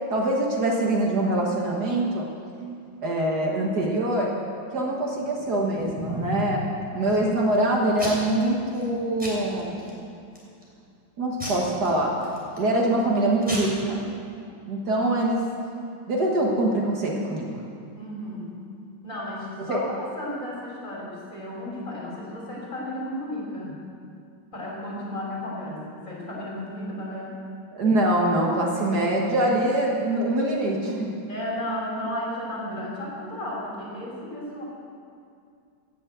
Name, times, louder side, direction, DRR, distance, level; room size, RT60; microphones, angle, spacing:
voice 1, 0.1-2.3 3.0-4.3 4.7-6.7 6.9-9.9 11.2-12.1 12.6-14.0 14.7-15.4 16.1-17.5 19.7-19.8 27.7-31.1, right 1 dB, 55° right, -2 dB, 2.0 m, -24 dB
Packing tape duct tape / Tearing, 5.2-6.6 7.1-7.6 8.0-8.4 8.7-8.9 9.2-9.9 10.4-10.7 11.4-12.7 13.1-13.2 13.4-13.6, equal, 5° right, 3.0 m, -34 dB
voice 2, 18.0-18.5 19.0-23.8 24.5-27.4 31.3-34.6, left 1 dB, 40° left, -4 dB, 3.7 m, -33 dB
15.5 x 6.4 x 8.0 m, 2.4 s
omnidirectional pair, 2.1 m